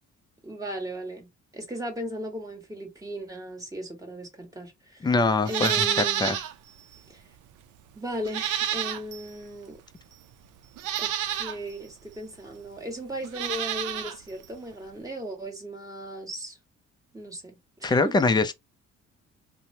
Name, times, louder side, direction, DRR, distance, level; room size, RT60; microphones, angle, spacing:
voice 1, 0.4-1.3 1.5-5.1 5.5-6.4 7.1-7.2 7.9-9.8 11.0-16.6 17.1-18.1, equal, 10° right, 1.5 m, -37 dB
voice 2, 5.0-6.4 17.8-18.5, left 3 dB, 15° left, 0.4 m, -23 dB
Livestock farm animals working animals, 5.4-6.5 6.9-7.0 8.2-9.3 10.1-10.2 10.8-11.6 13.2-14.2 14.4-14.5, right 10 dB, 80° right, 0.5 m, -29 dB
2.9 x 2.1 x 2.6 m
cardioid pair, 90°, 30 cm